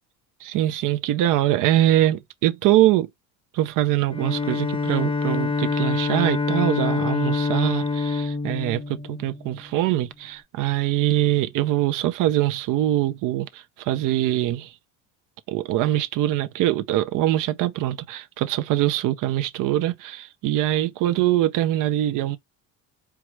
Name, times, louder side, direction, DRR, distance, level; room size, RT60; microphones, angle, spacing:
voice 1, 0.4-3.1 3.5-14.8 15.5-22.4, right 14 dB, 60° right, 0.5 m, -23 dB
Bowed string instrument, 4.1-9.7, left 4 dB, 15° left, 0.4 m, -26 dB
4.6 x 2.0 x 4.5 m
cardioid pair, 125°, 35 cm